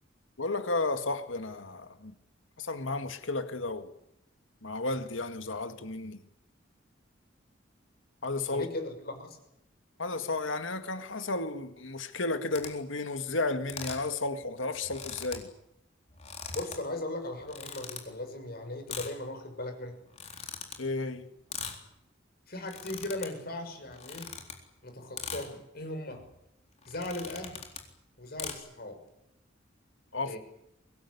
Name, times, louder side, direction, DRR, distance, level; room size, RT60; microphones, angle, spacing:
voice 1, 0.4-2.1 2.6-3.9 4.6-6.2 8.2-8.7 10.0-15.5 20.8-21.3 30.1-30.4, left 3 dB, 80° left, 2.0 m, -33 dB
voice 2, 8.5-9.4 16.5-20.0 22.5-24.3 24.8-26.3 26.9-27.7 28.2-29.0 30.2-30.4, left 1 dB, 50° left, 6.1 m, -38 dB
sound 1, 12.5-12.7 13.7-14.1 14.4-14.5 14.7-15.4 16.1-16.8 17.4-18.0 18.9-19.1 20.1-20.7 21.5-21.8 22.5-23.3 23.9-24.6 25.2-25.4 26.1-26.3 26.8-27.9 28.4-28.5, left 6 dB, 35° left, 4.1 m, -40 dB
23.5 x 20.0 x 9.7 m
head